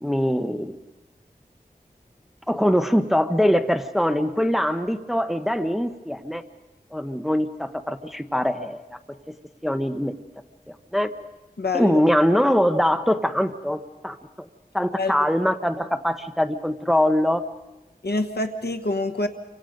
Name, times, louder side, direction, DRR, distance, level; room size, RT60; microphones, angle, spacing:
voice 1, 0.0-0.7 2.5-6.4 6.9-9.0 9.6-10.2 10.7-11.1 11.7-14.5 14.7-17.4, equal, ahead, 9 dB, 0.9 m, -23 dB
voice 2, 11.6-12.0 15.0-15.1 18.0-19.3, left 2 dB, 90° left, 7 dB, 1.2 m, -26 dB
29.5 x 25.0 x 5.3 m, 1.1 s
wide cardioid pair, 55°, 16 cm